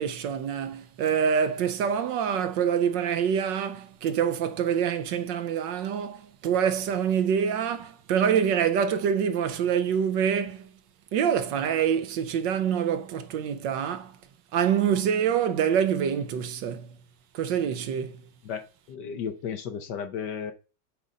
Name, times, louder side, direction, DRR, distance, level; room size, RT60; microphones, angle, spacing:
voice 1, 0.0-10.7 11.1-14.2 14.5-17.0 17.3-18.2, right 8 dB, 70° right, 1.3 m, -26 dB
voice 2, 18.9-20.5, left 7 dB, 65° left, 1.4 m, -33 dB
8.1 x 3.9 x 5.0 m
omnidirectional pair, 2.1 m